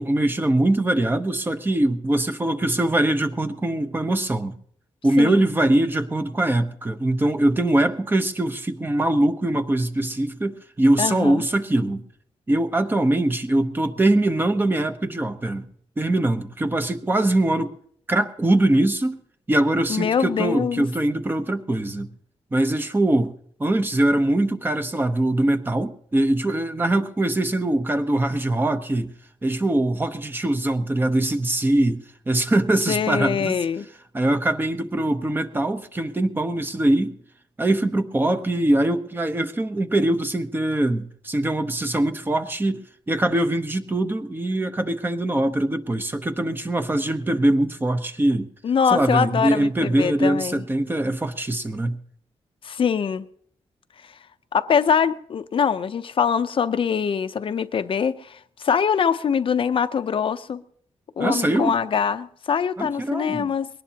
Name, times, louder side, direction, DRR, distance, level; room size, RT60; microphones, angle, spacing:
voice 1, 0.0-4.6 5.0-12.0 12.5-15.7 16.0-17.7 18.1-19.2 19.5-22.1 22.5-23.3 23.6-29.1 29.4-33.6 34.1-37.2 37.6-42.8 43.1-48.5 48.9-52.0 61.2-61.8 62.8-63.5, right 1 dB, 20° right, 0.9 m, -22 dB
voice 2, 11.0-11.4 19.9-20.9 32.9-33.9 48.6-50.6 52.6-53.2 54.5-60.6 61.2-63.7, left 7 dB, 55° left, 0.7 m, -23 dB
21.5 x 18.5 x 2.9 m
wide cardioid pair, 145°, 11 cm